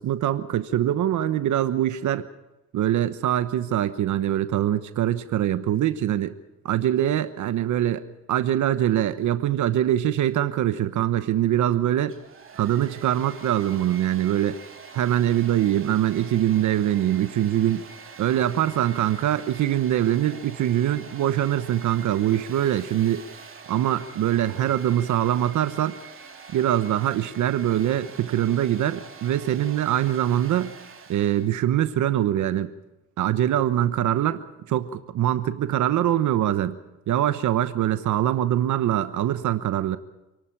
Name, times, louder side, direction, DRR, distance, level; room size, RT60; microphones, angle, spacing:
voice 1, 0.0-2.3 2.7-6.3 6.6-8.0 8.3-12.2 12.5-14.6 14.9-17.9 18.2-23.2 23.7-26.0 26.5-30.7 31.1-32.7 33.2-36.8 37.1-40.0, right 12 dB, 75° right, 12 dB, 1.1 m, -23 dB
Domestic sounds home sounds, 12.0-31.5, right 5 dB, 45° right, 3.2 m, -45 dB
27.5 x 12.0 x 9.0 m, 1.0 s
cardioid pair, 90°, 30 cm